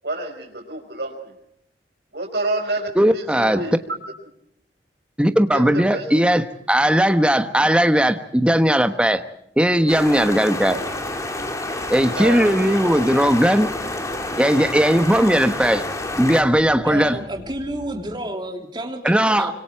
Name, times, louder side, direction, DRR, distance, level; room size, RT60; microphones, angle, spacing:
voice 1, 0.0-1.4 2.1-3.7 5.5-6.1 10.7-10.8 12.2-12.5, right 2 dB, 70° right, 5.3 m, -28 dB
voice 2, 3.0-3.6 5.2-9.2 9.6-10.8 11.9-13.7 14.4-15.8 16.2-17.2 19.0-19.5, equal, 5° right, 1.2 m, -18 dB
sound 1, 9.9-16.4, left 1 dB, 20° left, 2.4 m, -29 dB
sound 2, 10.5-18.2, equal, 70° left, 5.4 m, -43 dB
voice 3, 16.8-19.5, right 1 dB, 25° right, 3.1 m, -30 dB
25.5 x 25.0 x 4.6 m
head